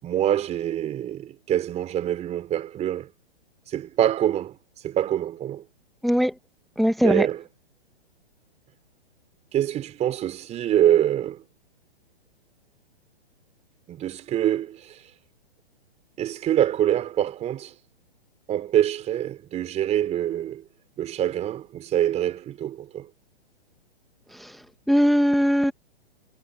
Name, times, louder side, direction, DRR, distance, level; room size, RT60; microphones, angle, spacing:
voice 1, 0.0-3.1 3.7-4.6 4.8-5.6 7.0-7.4 9.5-11.4 13.9-15.0 16.2-17.7 18.5-20.6 21.0-23.1, right 11 dB, 20° right, 3.9 m, -25 dB
voice 2, 6.0-6.3 6.8-7.3 24.4-24.5 24.9-25.7, equal, ahead, 1.9 m, -20 dB
hypercardioid pair, 130°, 31 cm